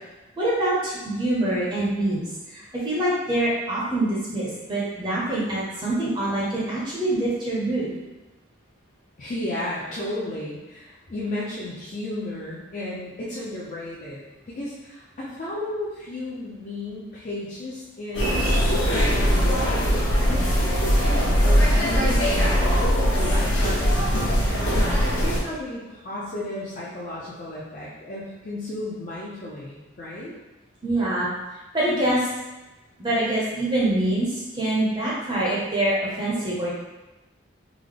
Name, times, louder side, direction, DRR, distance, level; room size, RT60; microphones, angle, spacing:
voice 1, 0.4-7.9 30.8-31.3 31.7-32.3 33.0-36.7, right 1 dB, 25° right, -6 dB, 0.6 m, -25 dB
voice 2, 9.2-30.3, left 1 dB, 40° left, -8 dB, 0.4 m, -34 dB
sound 1, 18.1-25.4, equal, 70° left, 0.9 m, -21 dB
3.6 x 2.0 x 3.2 m, 1.1 s
head